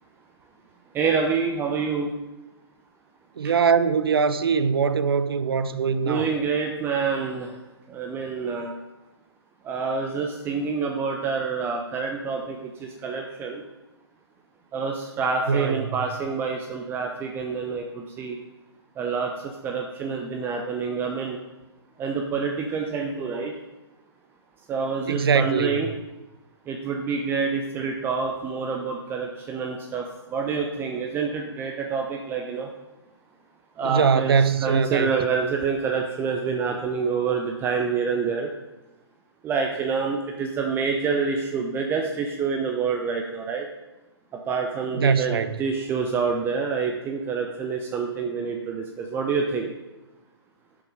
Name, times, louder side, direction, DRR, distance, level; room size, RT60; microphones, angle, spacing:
voice 1, 0.9-2.1 6.0-7.5 7.9-8.7 9.6-13.6 14.7-18.4 19.0-19.3 19.6-21.4 22.0-23.5 24.7-25.9 26.7-32.7 33.8-38.5 39.4-43.7 44.5-49.7, right 5 dB, 15° right, 0.8 m, -27 dB
voice 2, 3.4-6.3 15.5-16.0 25.1-25.8 33.8-35.1 44.9-45.5, right 6 dB, 60° right, 0.8 m, -22 dB
11.5 x 7.1 x 5.2 m
figure-of-eight pair, 125°, 14 cm